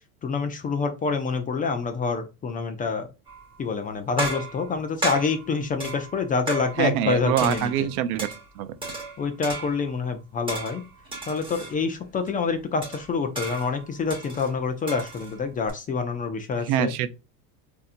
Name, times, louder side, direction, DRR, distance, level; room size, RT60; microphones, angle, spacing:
voice 1, 0.2-3.1 3.6-7.9 9.2-10.8 11.3-16.9, left 5 dB, 20° left, 0.4 m, -27 dB
sound 1, 3.3-3.6 4.2-7.1 7.4-8.5 8.8-10.0 10.5-11.8 12.3-12.4 12.8-15.7, right 2 dB, 10° right, 2.2 m, -35 dB
voice 2, 6.8-8.3 8.6-8.7 16.6-17.1, right 11 dB, 75° right, 0.7 m, -24 dB
3.9 x 2.8 x 2.5 m
supercardioid pair, 125°, 44 cm